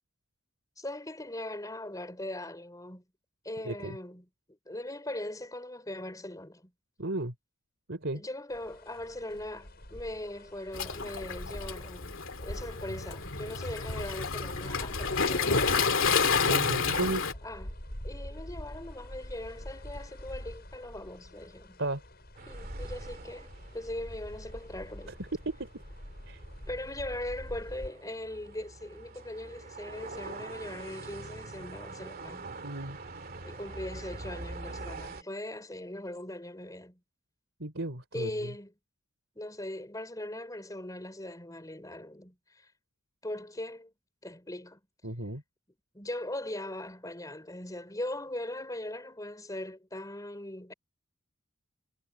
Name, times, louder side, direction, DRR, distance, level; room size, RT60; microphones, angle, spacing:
voice 1, 0.8-3.0 3.4-4.3 4.6-6.7 8.1-16.2 17.4-17.7 18.0-21.8 22.5-25.2 26.7-32.5 33.4-37.0 38.1-38.7 39.3-42.7 43.2-43.9 44.2-44.8 45.9-50.7, left 1 dB, 15° left, 4.4 m, -40 dB
voice 2, 3.6-4.0 7.0-7.3 7.9-8.2 16.4-17.2 21.8-22.0 25.2-25.8 26.3-26.4 32.6-33.0 37.6-38.5 45.0-45.4, right 2 dB, 60° right, 3.9 m, -34 dB
sound 1, 8.5-27.9, equal, 50° left, 7.6 m, -45 dB
Waves surf, 10.7-17.3, left 5 dB, 65° left, 2.5 m, -29 dB
sound 2, 22.4-35.2, right 2 dB, 45° right, 2.6 m, -44 dB
head